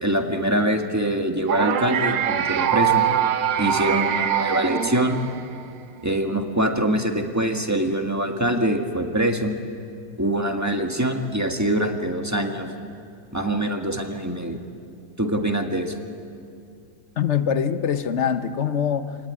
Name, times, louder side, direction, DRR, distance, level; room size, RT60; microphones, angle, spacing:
voice 1, 0.0-3.0 3.6-5.2 6.0-9.5 10.2-12.7 13.3-14.6 15.2-15.9, right 1 dB, 10° right, 3 dB, 1.5 m, -24 dB
sound 1, 1.5-5.7, right 10 dB, 85° right, 1.6 m, -23 dB
voice 2, 17.2-19.2, left 8 dB, 45° left, 10 dB, 1.1 m, -23 dB
26.5 x 18.5 x 9.7 m, 2.5 s
omnidirectional pair, 1.9 m